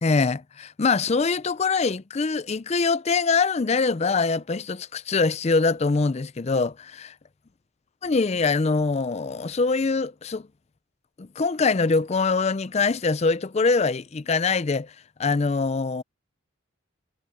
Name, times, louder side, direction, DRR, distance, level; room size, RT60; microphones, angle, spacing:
voice 1, 0.0-7.1 8.0-10.5 11.2-14.9 15.2-16.0, left 4 dB, 30° left, 0.4 m, -23 dB
head